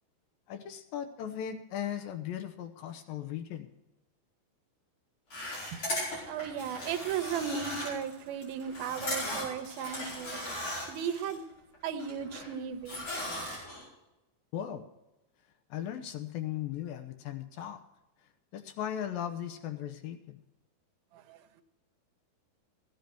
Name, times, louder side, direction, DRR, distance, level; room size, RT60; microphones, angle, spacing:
voice 1, 0.5-3.7 14.5-14.9 15.7-17.8 18.5-20.4, left 10 dB, 75° left, 2.4 m, -37 dB
sound 1, 5.3-11.3 11.7-12.5 12.9-13.8, left 1 dB, 40° left, 6.1 m, -37 dB
voice 2, 6.3-10.5 10.9-11.4 11.8-13.1 21.3-21.6, right 8 dB, 75° right, 2.8 m, -36 dB
15.0 x 10.5 x 4.4 m
omnidirectional pair, 4.4 m